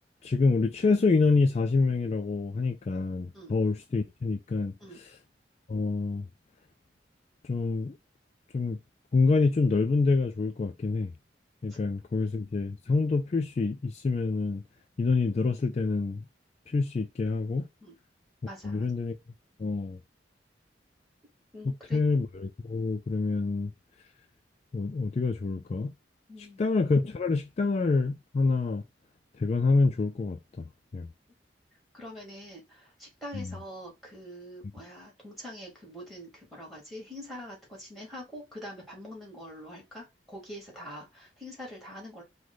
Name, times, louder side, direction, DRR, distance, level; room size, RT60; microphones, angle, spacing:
voice 1, 0.2-4.7 5.7-6.2 7.5-7.9 8.5-8.8 9.1-11.1 11.6-14.6 15.0-16.2 16.7-17.7 18.6-19.2 19.6-20.0 21.9-23.7 24.7-25.9 26.6-28.8 29.4-31.1 33.4-33.5, left 3 dB, 40° left, 0.3 m, -26 dB
voice 2, 18.4-18.9 21.5-22.0 26.3-26.6 31.9-42.2, equal, ahead, 2.0 m, -44 dB
4.7 x 2.2 x 3.9 m
head